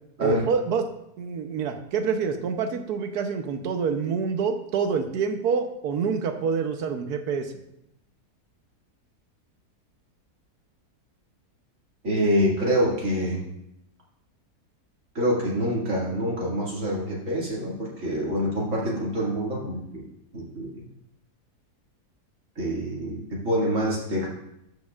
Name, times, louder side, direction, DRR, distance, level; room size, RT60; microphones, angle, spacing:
voice 1, 0.2-0.8 1.2-7.5, right 6 dB, 80° right, 7 dB, 1.3 m, -27 dB
voice 2, 12.0-13.4 15.1-20.0 20.3-20.9 22.6-24.3, equal, 55° right, -5 dB, 2.5 m, -26 dB
13.5 x 5.3 x 2.4 m, 0.81 s
omnidirectional pair, 1.7 m